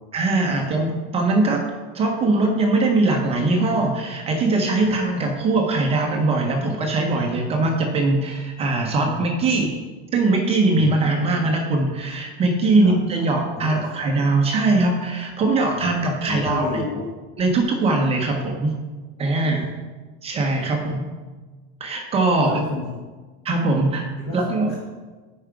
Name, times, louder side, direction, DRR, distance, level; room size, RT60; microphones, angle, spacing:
voice 1, 0.1-1.6 1.9-9.8 10.1-16.8 17.4-18.7 19.2-19.6 20.2-21.0 21.8-22.6 23.4-24.1 24.3-24.8, right 2 dB, 15° right, 2 dB, 0.5 m, -21 dB
voice 2, 4.8-5.3 9.1-9.3 10.7-11.5 12.8-13.2 13.5-14.0 15.8-17.1 19.3-19.7 20.6-20.8 22.4-23.0 24.2-24.4 24.7-24.8, left 3 dB, 25° left, 0 dB, 0.6 m, -32 dB
6.7 x 4.7 x 4.8 m, 1.3 s
supercardioid pair, 170°, 35 cm